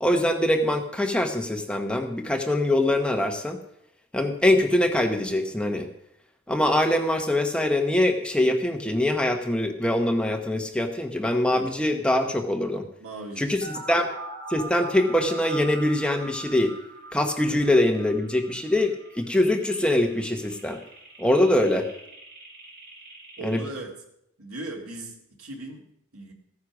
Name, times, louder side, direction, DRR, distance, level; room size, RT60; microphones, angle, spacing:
voice 1, 0.0-3.6 4.1-5.9 6.5-12.8 13.4-14.1 14.5-16.7 17.1-20.8 21.2-21.8 23.4-23.6, left 1 dB, 5° left, 4 dB, 1.0 m, -23 dB
voice 2, 13.0-13.9 17.5-17.6 21.4-21.5 23.4-24.0 24.4-26.3, right 2 dB, 85° right, 1 dB, 2.4 m, -39 dB
sound 1, 13.6-23.6, right 2 dB, 45° right, 4.2 m, -42 dB
15.0 x 9.7 x 6.1 m, 0.77 s
head